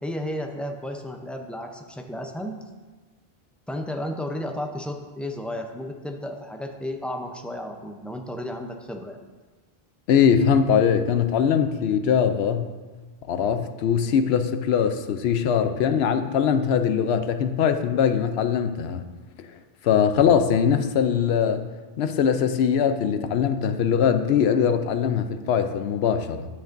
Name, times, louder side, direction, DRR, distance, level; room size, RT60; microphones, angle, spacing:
voice 1, 0.0-2.6 3.7-9.2, left 1 dB, ahead, 3 dB, 0.4 m, -33 dB
voice 2, 10.1-12.7 13.3-19.1 19.8-21.7 22.0-26.5, left 7 dB, 80° left, 9 dB, 0.8 m, -21 dB
9.6 x 9.1 x 2.6 m, 1.4 s
omnidirectional pair, 1.1 m